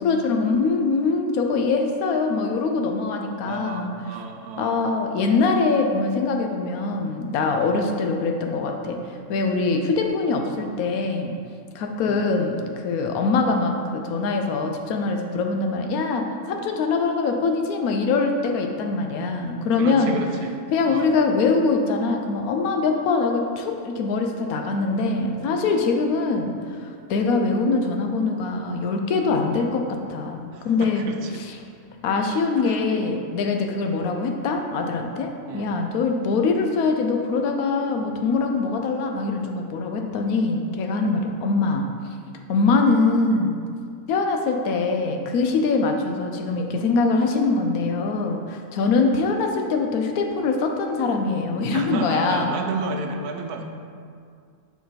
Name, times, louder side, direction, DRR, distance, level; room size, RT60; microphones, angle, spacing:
voice 1, 0.0-3.9 4.6-9.0 9.3-11.3 11.7-20.1 20.7-26.5 26.8-29.8 30.1-31.1 31.3-31.6 32.0-41.9 42.5-43.6 44.1-52.5, left 4 dB, 75° left, 3 dB, 1.0 m, -23 dB
voice 2, 3.4-4.8 12.1-12.3 19.7-20.6 20.9-21.1 30.5-31.4 32.3-32.8 35.5-35.7 51.7-53.6, right 3 dB, 90° right, 4 dB, 1.2 m, -32 dB
6.2 x 4.7 x 4.0 m, 2.2 s
omnidirectional pair, 1.6 m